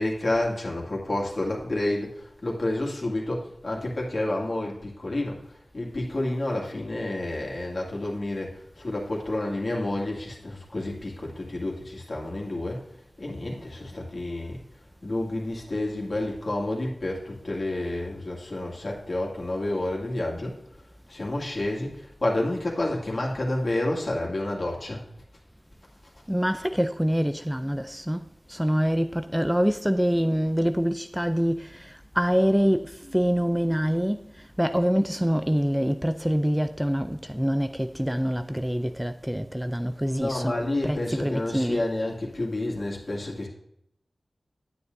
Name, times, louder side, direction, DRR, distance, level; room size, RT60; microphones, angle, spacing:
voice 1, 0.0-5.4 5.7-12.8 13.2-14.6 15.0-20.6 21.1-25.0 40.0-43.5, left 1 dB, 60° left, 2.2 m, -29 dB
voice 2, 26.3-41.9, equal, 5° right, 0.4 m, -25 dB
9.5 x 8.9 x 2.7 m
wide cardioid pair, 55°, 0 cm